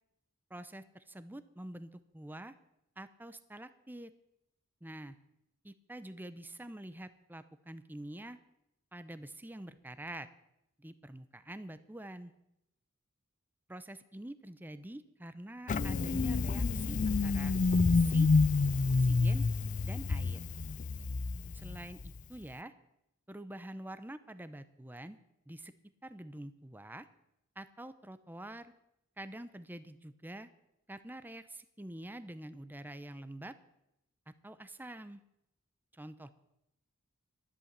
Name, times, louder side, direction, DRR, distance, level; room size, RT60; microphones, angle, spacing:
voice 1, 0.5-2.6 3.0-4.1 4.8-5.2 5.6-8.4 8.9-10.3 10.8-12.3 13.7-17.5 17.9-18.3 19.0-19.5 19.8-20.4 21.6-22.7 23.3-25.2 25.5-25.7 26.0-27.1 27.6-28.7 29.2-30.5 30.9-33.6 34.3-35.2 35.9-36.3, right 1 dB, 10° right, 12 dB, 0.7 m, -46 dB
Engine starting, 15.7-22.2, left 3 dB, 35° left, 0.4 m, -28 dB
11.5 x 11.0 x 7.4 m, 0.83 s
head